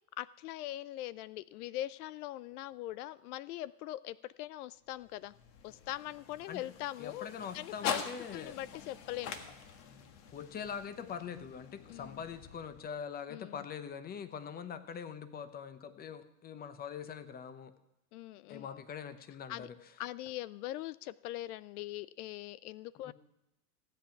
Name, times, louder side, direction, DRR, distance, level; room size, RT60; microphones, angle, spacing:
voice 1, 0.2-5.3 5.6-8.0 8.3-9.4 11.9-12.2 13.3-13.7 18.1-18.7 19.5-19.7 20.0-23.1, left 15 dB, 75° left, 19 dB, 0.5 m, -42 dB
sound 1, 4.8-13.1, left 7 dB, 55° left, 1.7 m, -44 dB
voice 2, 7.0-8.6 10.3-17.7 18.5-19.9 23.0-23.1, left 7 dB, 20° left, 12 dB, 0.8 m, -43 dB
15.5 x 8.5 x 5.9 m, 0.92 s
supercardioid pair, 130°, 45 cm